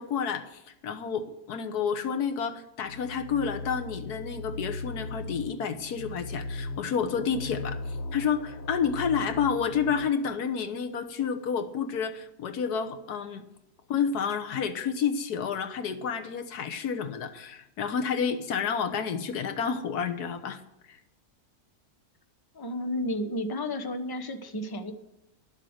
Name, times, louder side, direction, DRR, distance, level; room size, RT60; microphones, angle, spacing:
voice 1, 0.0-13.4 13.9-20.6 20.9-21.0, left 6 dB, 90° left, 7 dB, 1.6 m, -30 dB
sound 1, 2.9-10.1, left 3 dB, 50° left, 1.1 m, -38 dB
voice 2, 22.5-24.9, left 1 dB, 20° left, 7 dB, 0.8 m, -32 dB
12.0 x 7.5 x 7.9 m, 0.86 s
omnidirectional pair, 1.6 m